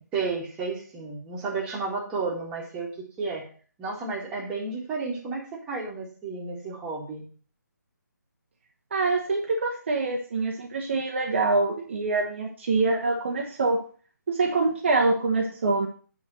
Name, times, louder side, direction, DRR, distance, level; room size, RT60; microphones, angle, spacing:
voice 1, 0.0-2.9 3.2-3.5 3.8-7.2, right 4 dB, 10° right, -4 dB, 1.7 m, -32 dB
voice 2, 8.9-13.8 14.3-15.9, right 3 dB, 40° right, 0 dB, 1.0 m, -25 dB
8.6 x 3.5 x 6.2 m, 0.42 s
figure-of-eight pair, 145°, 10 cm